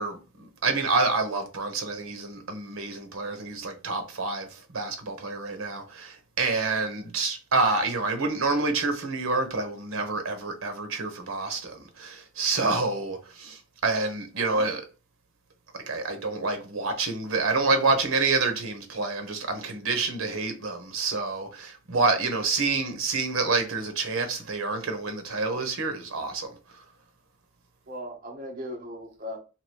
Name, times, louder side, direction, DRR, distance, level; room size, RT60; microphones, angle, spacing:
voice 1, 0.0-14.8 15.7-26.5, right 3 dB, 75° right, 0.9 m, -28 dB
voice 2, 14.4-14.7 27.9-29.4, equal, 40° right, 1.0 m, -38 dB
2.9 x 2.9 x 4.5 m
head